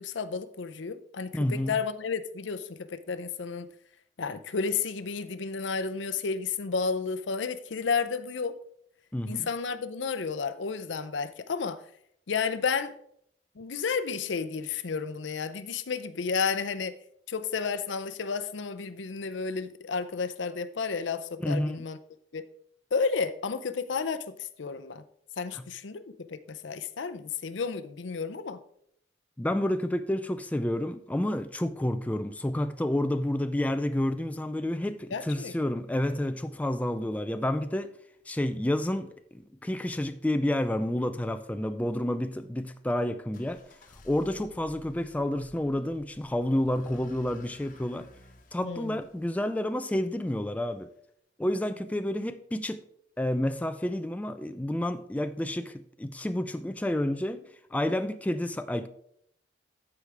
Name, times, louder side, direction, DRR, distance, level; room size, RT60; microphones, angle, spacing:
voice 1, 0.0-3.7 4.2-8.6 9.3-11.8 12.3-12.9 13.6-17.0 17.3-22.0 22.3-22.5 22.9-25.0 25.4-28.6 35.1-35.5 48.6-49.0, left 5 dB, 80° left, 0.6 m, -32 dB
voice 2, 1.3-1.7 9.1-9.5 21.4-21.8 25.5-25.7 29.4-37.9 38.3-43.6 44.0-48.1 48.5-50.9 51.4-52.8 53.2-57.4 57.7-58.9, left 1 dB, 10° left, 0.3 m, -30 dB
sound 1, 43.3-50.2, left 2 dB, 45° left, 1.0 m, -55 dB
14.5 x 4.8 x 3.4 m
head